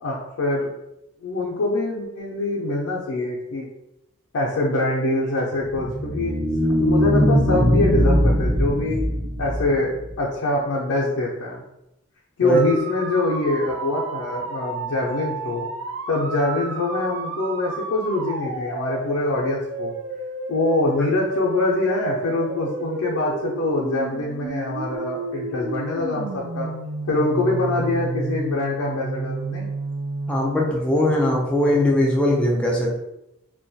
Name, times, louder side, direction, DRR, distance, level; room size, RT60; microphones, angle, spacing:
voice 1, 0.0-0.7 1.2-3.7 4.3-6.3 6.8-9.0 9.4-9.9 10.2-11.6 12.4-15.7 16.1-19.9 20.5-26.7 27.1-29.7, left 2 dB, 85° left, -5 dB, 0.4 m, -24 dB
sound 1, 5.6-10.1, equal, 35° right, 1.0 m, -20 dB
sound 2, 12.5-30.5, right 3 dB, 80° right, 0.4 m, -31 dB
voice 2, 30.3-33.0, left 1 dB, 5° left, -3 dB, 0.3 m, -20 dB
2.2 x 2.1 x 2.6 m, 0.88 s
head